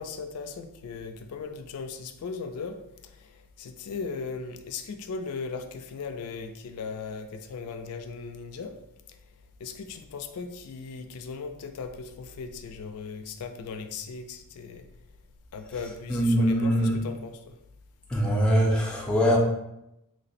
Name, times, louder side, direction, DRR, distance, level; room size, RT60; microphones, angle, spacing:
voice 1, 0.0-2.8 3.1-8.8 9.6-14.9 15.5-17.6, left 5 dB, 85° left, 6 dB, 0.4 m, -38 dB
voice 2, 16.1-17.0 18.1-19.4, equal, 5° left, -3 dB, 0.5 m, -22 dB
3.1 x 2.0 x 4.1 m, 0.84 s
head